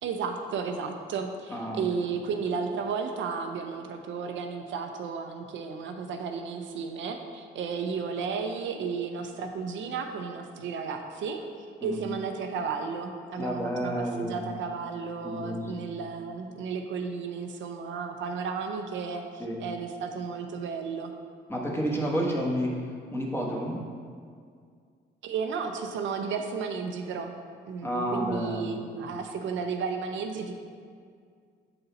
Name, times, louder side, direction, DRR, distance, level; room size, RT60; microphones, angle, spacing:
voice 1, 0.0-11.4 11.8-21.1 25.2-27.3 27.7-30.5, right 5 dB, 70° right, 5 dB, 0.6 m, -33 dB
voice 2, 1.5-1.8 11.8-12.0 13.4-14.4 15.2-15.9 19.4-19.6 21.5-22.7 23.1-23.8 27.8-28.8, equal, 10° left, -2 dB, 1.2 m, -30 dB
6.7 x 4.0 x 4.0 m, 2.1 s
cardioid pair, 90°, 20 cm